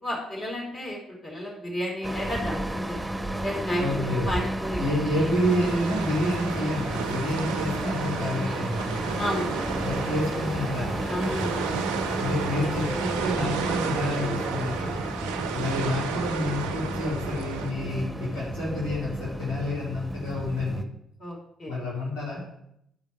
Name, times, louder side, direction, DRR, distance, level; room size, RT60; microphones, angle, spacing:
voice 1, 0.0-3.0 3.4-4.8 5.2-5.3 9.2-9.8 11.1-11.6 12.6-12.7 21.2-21.8, equal, 45° left, -2 dB, 2.7 m, -32 dB
sound 1, 2.0-20.8, right 1 dB, 10° right, 0.9 m, -32 dB
voice 2, 3.8-4.3 4.8-9.1 9.8-10.9 12.2-15.0 15.5-20.9 21.7-22.4, left 1 dB, 70° left, -5 dB, 2.9 m, -29 dB
sound 2, 4.8-17.7, right 7 dB, 75° right, 0.3 m, -33 dB
11.5 x 5.0 x 4.4 m, 0.76 s
figure-of-eight pair, 40°, 0 cm